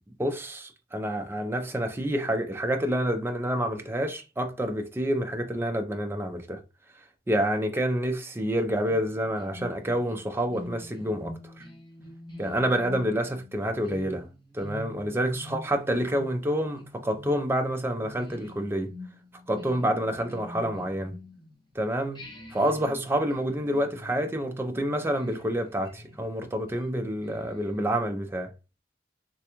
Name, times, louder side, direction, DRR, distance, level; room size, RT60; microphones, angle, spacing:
voice 1, 0.2-6.6 7.3-11.6 12.4-14.3 14.5-18.9 19.5-21.1 21.7-22.2 22.5-28.5, equal, 15° right, 0.4 m, -28 dB
sound 1, 8.6-21.7 22.1-28.0, left 2 dB, 25° left, 1.3 m, -46 dB
3.3 x 2.3 x 2.9 m
head